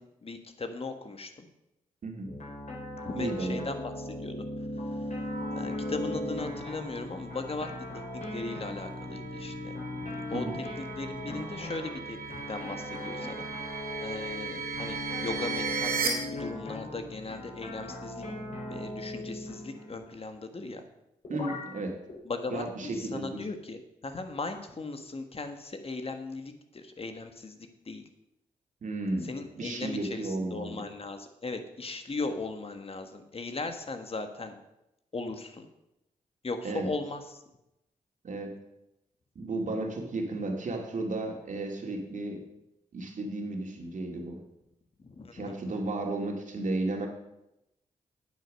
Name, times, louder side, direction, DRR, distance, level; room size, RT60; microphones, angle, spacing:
voice 1, 0.0-1.5 3.0-4.4 4.8-5.1 5.5-7.7 8.1-9.8 10.0-10.4 11.0-13.5 14.0-18.2 18.7-20.8 22.2-28.0 29.3-34.5 35.1-35.7 36.4-37.4 45.0-45.5, left 3 dB, 40° left, 7 dB, 1.6 m, -38 dB
voice 2, 2.0-2.3 3.1-3.7 10.3-10.6 21.3-22.0 22.5-23.4 28.8-30.8 36.6-36.9 38.2-38.6 39.4-42.4 42.9-44.4 45.3-47.1, right 2 dB, 60° right, 2 dB, 2.4 m, -33 dB
sound 1, 2.3-20.1 21.2-21.7 22.1-22.2, left 1 dB, 60° left, 4.7 m, -38 dB
sound 2, 5.1-16.1, right 7 dB, 80° right, 2.8 m, -39 dB
9.1 x 8.5 x 6.4 m, 0.89 s
cardioid pair, 60°, 14 cm